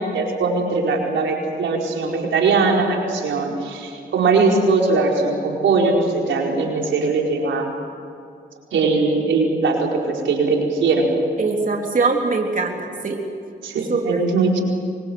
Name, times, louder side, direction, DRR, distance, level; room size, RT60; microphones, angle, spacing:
voice 1, 0.0-7.7 8.7-11.1 13.6-14.6, right 3 dB, 90° right, -1 dB, 4.7 m, -20 dB
voice 2, 11.4-13.2 13.9-14.3, right 4 dB, 45° right, 1 dB, 3.6 m, -22 dB
24.5 x 24.0 x 7.9 m, 2.4 s
cardioid pair, 65°, 19 cm